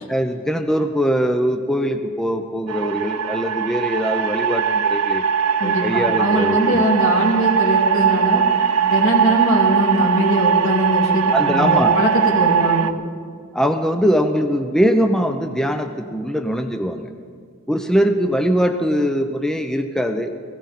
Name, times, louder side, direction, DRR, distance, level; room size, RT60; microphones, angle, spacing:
voice 1, 0.1-5.2 5.6-6.8 11.3-12.0 13.5-17.1 17.7-20.3, equal, ahead, 6 dB, 0.5 m, -21 dB
sound 1, 2.7-12.9, right 7 dB, 70° right, 0.5 m, -20 dB
voice 2, 5.6-8.4 8.9-12.9, equal, 60° left, -1 dB, 2.4 m, -21 dB
17.5 x 16.5 x 4.2 m, 2.1 s
head